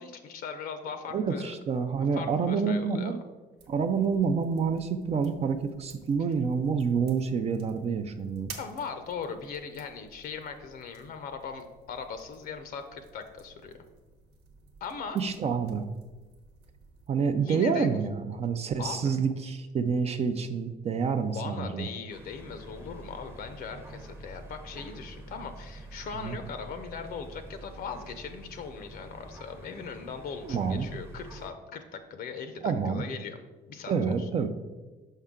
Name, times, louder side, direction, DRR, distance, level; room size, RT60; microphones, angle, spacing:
voice 1, 0.0-1.5 2.1-3.2 8.6-13.7 14.8-15.2 17.4-17.9 18.8-19.2 21.3-33.4 33.7-34.3, left 6 dB, 60° left, 8 dB, 0.6 m, -39 dB
voice 2, 1.1-3.2 3.7-8.5 15.1-15.8 17.1-21.9 26.2-26.4 30.4-30.9 32.6-33.0 33.9-34.5, right 5 dB, 40° right, 8 dB, 0.4 m, -28 dB
sound 1, 3.6-17.1, right 5 dB, 75° right, 1.1 m, -53 dB
sound 2, 22.1-31.5, right 1 dB, 15° right, 0.8 m, -47 dB
5.5 x 5.5 x 3.7 m, 1.2 s
cardioid pair, 110°, 17 cm